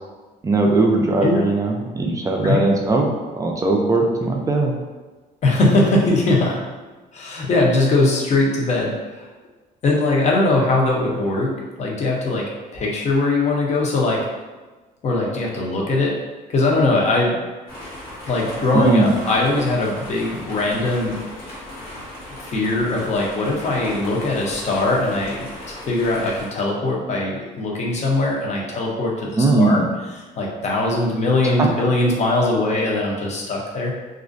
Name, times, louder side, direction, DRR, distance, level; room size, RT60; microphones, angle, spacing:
voice 1, 0.4-3.1 3.3-4.7 18.7-19.1 29.4-29.9 31.6-31.7, right 2 dB, 20° right, 1 dB, 0.3 m, -18 dB
voice 2, 5.4-6.6 7.1-9.3 9.8-11.5 11.8-12.5 12.7-14.2 15.0-16.1 16.5-17.4 18.3-21.2 22.5-25.5 25.9-29.8 30.1-33.9, left 2 dB, 40° left, -2 dB, 0.6 m, -20 dB
sound 1, 17.7-26.5, left 1 dB, 65° left, 1.0 m, -37 dB
2.4 x 2.1 x 2.5 m, 1.3 s
cardioid pair, 110°, 17 cm